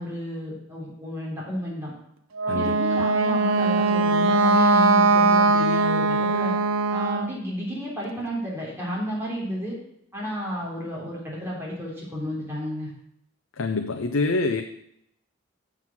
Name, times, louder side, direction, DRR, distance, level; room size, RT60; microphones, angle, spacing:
voice 1, 0.0-1.9 2.4-6.5 6.9-9.8 10.1-12.9, equal, 15° right, -5 dB, 3.6 m, -31 dB
Wind instrument woodwind instrument, 2.4-7.3, right 3 dB, 80° right, 0.7 m, -20 dB
voice 2, 2.5-3.1 13.6-14.6, left 3 dB, 85° left, 5 dB, 0.7 m, -26 dB
7.8 x 7.4 x 6.0 m, 0.74 s
head